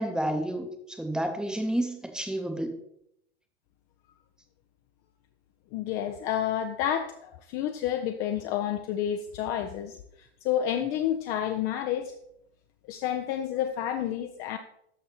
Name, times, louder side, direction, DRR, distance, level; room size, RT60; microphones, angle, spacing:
voice 1, 0.0-2.8, right 1 dB, ahead, 6 dB, 0.8 m, -30 dB
voice 2, 5.7-12.1 12.9-14.6, left 10 dB, 30° left, 6 dB, 0.4 m, -30 dB
12.5 x 6.3 x 2.8 m, 0.76 s
figure-of-eight pair, 95°, 33 cm